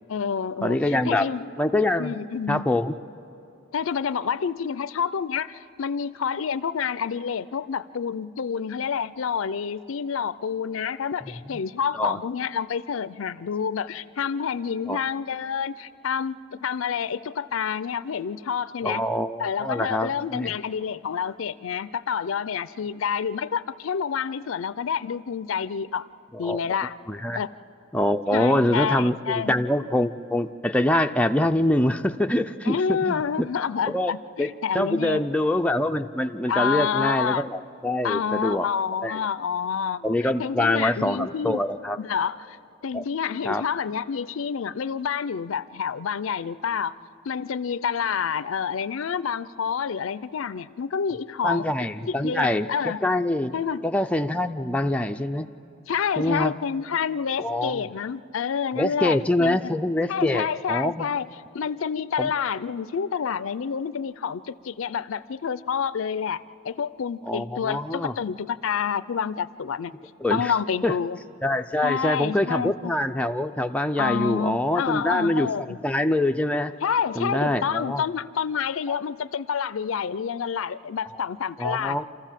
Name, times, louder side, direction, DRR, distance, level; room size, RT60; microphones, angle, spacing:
voice 1, 0.1-1.5 2.0-2.7 3.7-19.0 19.4-26.1 26.4-26.9 27.3-27.5 28.3-29.5 32.7-35.3 36.5-37.5 38.0-41.6 42.0-42.6 42.8-46.9 47.2-51.7 52.1-53.0 53.5-53.8 55.9-59.7 60.1-61.3 61.5-69.9 70.3-71.2 71.8-72.9 74.0-75.8 76.8-82.0, left 7 dB, 80° left, 17 dB, 0.5 m, -28 dB
voice 2, 0.6-1.3 1.6-2.1 2.5-3.0 11.9-12.2 14.9-15.0 18.8-20.5 26.3-26.6 27.1-27.4 27.9-33.2 33.9-34.1 34.4-34.5 34.7-38.7 39.0-39.2 40.0-42.0 42.9-43.0 43.5-43.6 51.4-53.5 53.8-55.5 56.2-56.5 57.4-57.8 58.8-61.1 62.2-62.3 67.3-68.1 70.2-70.5 70.8-71.0 71.4-76.7 77.2-78.0 81.6-82.0, left 1 dB, 5° left, 5 dB, 0.4 m, -24 dB
27.5 x 14.0 x 7.4 m, 2.8 s
head